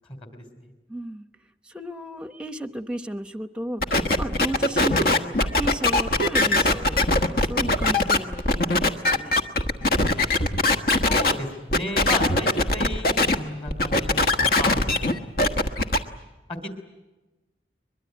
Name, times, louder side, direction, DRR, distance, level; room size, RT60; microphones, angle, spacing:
voice 1, 0.1-0.7 11.0-15.3 16.5-16.7, left 1 dB, 30° left, 6 dB, 2.8 m, -34 dB
voice 2, 0.9-1.3 1.6-9.4, right 1 dB, 5° right, 10 dB, 0.9 m, -34 dB
sound 1, 3.8-11.3 11.7-13.4 13.7-16.0, left 2 dB, 55° left, 1.3 m, -21 dB
23.0 x 22.0 x 9.1 m, 1.1 s
head